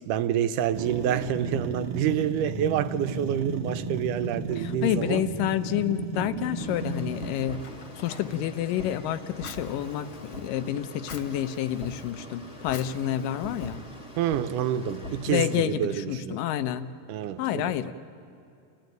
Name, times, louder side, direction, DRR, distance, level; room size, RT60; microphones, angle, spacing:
voice 1, 0.0-5.2 14.2-16.4 17.1-17.9, right 10 dB, 80° right, 2.2 m, -28 dB
sound 1, 0.7-7.5, right 3 dB, 65° right, 1.6 m, -34 dB
voice 2, 4.6-7.6 8.0-13.8 15.3-16.9 17.4-17.9, left 11 dB, 85° left, 2.5 m, -29 dB
sound 2, 6.6-15.6, left 1 dB, 25° left, 1.3 m, -42 dB
Fire, 7.1-14.3, left 6 dB, 55° left, 2.2 m, -50 dB
29.0 x 15.0 x 9.3 m
omnidirectional pair, 3.8 m